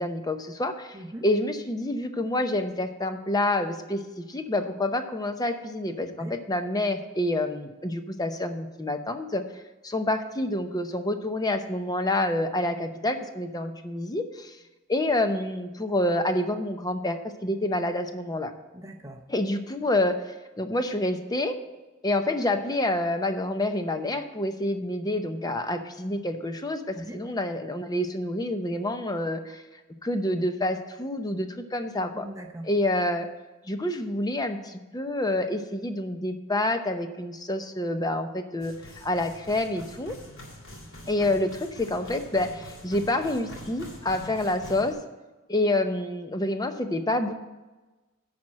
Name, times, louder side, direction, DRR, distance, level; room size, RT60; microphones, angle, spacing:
voice 1, 0.0-1.0 1.2-9.4 9.8-14.6 14.9-18.5 19.3-21.6 22.0-29.6 30.0-32.3 32.6-33.3 33.7-40.2 41.1-45.0 45.5-47.3, left 1 dB, 20° left, 7 dB, 0.7 m, -28 dB
voice 2, 0.9-1.2 6.2-6.3 18.7-19.2 26.9-27.2 32.1-32.7, right 1 dB, 15° right, 2 dB, 0.7 m, -40 dB
sound 1, 38.6-44.9, equal, 65° left, 2.8 m, -44 dB
11.0 x 4.3 x 7.6 m, 1.1 s
head